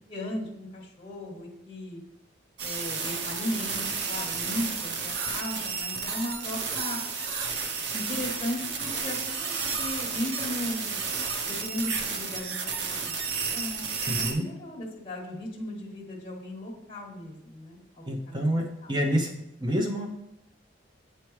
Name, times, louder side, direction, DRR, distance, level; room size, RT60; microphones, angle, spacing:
voice 1, 0.1-2.0 2.6-7.0 7.9-11.0 11.4-17.8 18.3-18.4, left 1 dB, 25° left, -3 dB, 1.2 m, -36 dB
sound 1, 2.6-14.3, right 5 dB, 65° right, 0.7 m, -32 dB
voice 2, 14.1-14.4 18.1-20.1, equal, 25° right, 2 dB, 0.5 m, -28 dB
8.0 x 4.6 x 3.1 m, 0.87 s
head